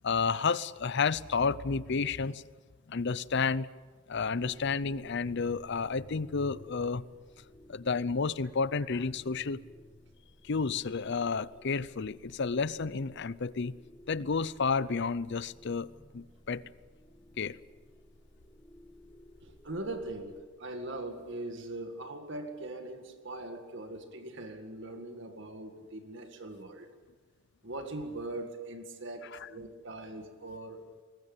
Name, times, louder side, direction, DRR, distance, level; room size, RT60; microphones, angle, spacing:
voice 1, 0.0-2.4 2.9-3.7 4.1-7.0 7.7-9.6 10.4-13.7 14.1-16.6 17.4-17.6, left 5 dB, 55° left, 0.6 m, -31 dB
sound 1, 4.4-20.4, equal, 15° left, 1.7 m, -57 dB
voice 2, 19.4-26.9 27.6-30.8, right 2 dB, 60° right, 1.9 m, -41 dB
22.0 x 19.5 x 8.9 m
head